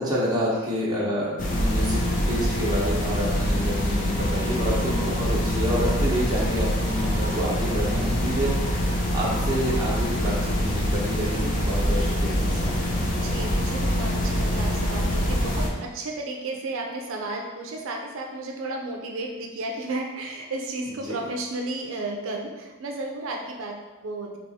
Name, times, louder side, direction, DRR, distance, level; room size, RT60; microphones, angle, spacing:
voice 1, 0.0-13.3 20.9-21.2, equal, 20° right, -6 dB, 0.9 m, -29 dB
sound 1, 1.4-15.7, equal, 40° left, 0.6 m, -25 dB
voice 2, 13.2-24.4, right 2 dB, 75° right, 1 dB, 0.5 m, -33 dB
3.3 x 3.0 x 4.1 m, 1.2 s
head